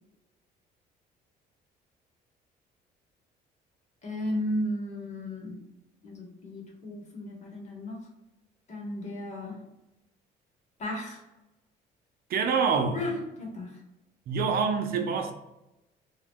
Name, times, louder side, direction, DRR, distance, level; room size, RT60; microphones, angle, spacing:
voice 1, 4.0-5.6 6.0-8.0 8.7-9.6 10.8-11.2 12.9-13.7, left 1 dB, 45° left, 1.1 m, -34 dB
voice 2, 12.3-13.0 14.3-15.3, right 5 dB, 60° right, 0.5 m, -26 dB
2.9 x 2.2 x 3.6 m
cardioid pair, 110°, 17 cm